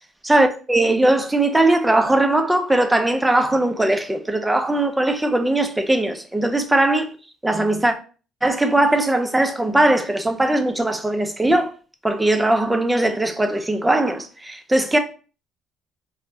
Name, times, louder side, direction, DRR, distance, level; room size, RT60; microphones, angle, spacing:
voice 1, 0.2-7.1 7.4-7.9 8.4-11.7 12.0-15.0, right 1 dB, 10° right, 0.3 m, -19 dB
3.3 x 2.0 x 2.5 m
cardioid pair, 140°, 0 cm